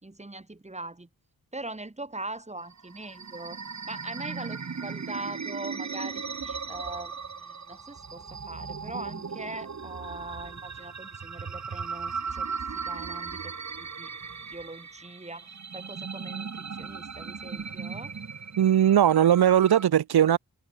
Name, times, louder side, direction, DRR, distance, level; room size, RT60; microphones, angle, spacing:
voice 1, 0.0-1.1 1.5-3.6 3.9-12.6 12.9-14.1 14.4-18.2, right 2 dB, 15° right, 4.7 m, -41 dB
sound 1, 2.6-19.9, right 5 dB, 45° right, 2.4 m, -37 dB
voice 2, 18.6-20.4, right 10 dB, 90° right, 0.9 m, -19 dB
wide cardioid pair, 145°, 38 cm